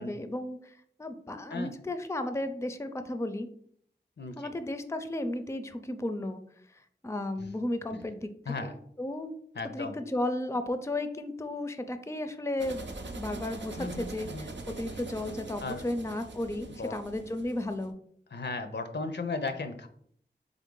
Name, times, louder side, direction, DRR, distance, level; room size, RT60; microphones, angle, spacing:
voice 1, 0.0-3.5 4.4-6.4 7.0-8.3 8.6-8.7 9.0-9.4 9.7-18.0, left 1 dB, 15° left, 9 dB, 0.4 m, -34 dB
voice 2, 4.2-4.5 7.4-7.5 7.9-8.0 8.5-8.7 9.6-10.0 13.8-14.5 15.6-15.8 16.7-16.9 18.3-19.9, left 3 dB, 75° left, 7 dB, 0.5 m, -36 dB
sound 1, 12.6-17.9, right 2 dB, 85° right, 0.5 m, -43 dB
3.6 x 3.6 x 3.7 m, 0.64 s
wide cardioid pair, 40°, 18 cm